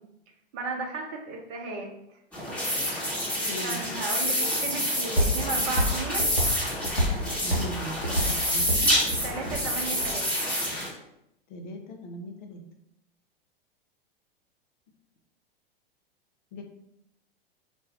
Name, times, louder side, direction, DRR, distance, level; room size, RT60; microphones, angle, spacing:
voice 1, 0.5-1.9 3.6-6.3 9.2-10.4, right 3 dB, 45° right, 2 dB, 0.7 m, -35 dB
sound 1, 2.3-10.9, equal, 5° left, 1.0 m, -28 dB
voice 2, 3.5-3.8 7.4-9.0 11.5-12.6 16.5-16.6, left 1 dB, 50° left, 3 dB, 0.6 m, -39 dB
sound 2, 5.2-10.1, equal, 85° left, 0.9 m, -29 dB
2.5 x 2.2 x 3.3 m, 0.81 s
figure-of-eight pair, 95°, 30 cm